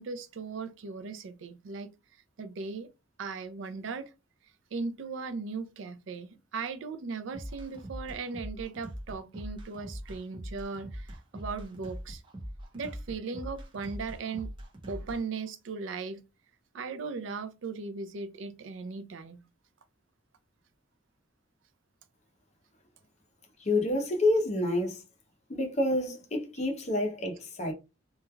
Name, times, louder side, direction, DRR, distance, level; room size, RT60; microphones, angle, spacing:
voice 1, 0.0-1.9 2.4-2.9 3.2-4.1 4.7-12.2 12.7-14.5 14.9-16.2 16.7-19.4, right 4 dB, 75° right, 0.4 m, -38 dB
sound 1, 7.3-15.2, equal, 25° right, 0.6 m, -42 dB
voice 2, 23.6-25.0 25.5-27.7, left 1 dB, 35° left, 0.6 m, -28 dB
3.0 x 2.3 x 2.2 m
head